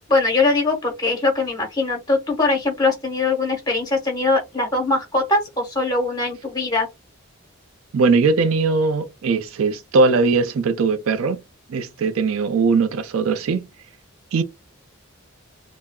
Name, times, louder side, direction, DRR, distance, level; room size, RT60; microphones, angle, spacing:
voice 1, 0.1-6.9, left 3 dB, 20° left, 1.0 m, -21 dB
voice 2, 7.9-11.4 11.7-13.7 14.3-14.4, right 4 dB, 75° right, 0.4 m, -20 dB
3.4 x 2.0 x 2.2 m
head